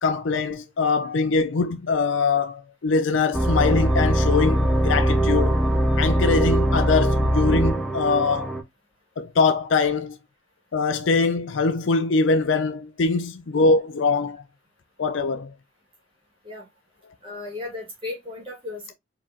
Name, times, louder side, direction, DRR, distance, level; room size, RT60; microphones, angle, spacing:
voice 1, 0.0-5.6 6.0-8.6 9.2-10.2 10.7-14.4 15.0-15.5, left 4 dB, 75° left, 0.5 m, -22 dB
sound 1, 3.3-8.6, right 1 dB, ahead, 0.7 m, -21 dB
voice 2, 17.2-18.9, left 3 dB, 25° right, 2.3 m, -35 dB
4.6 x 3.7 x 2.9 m
head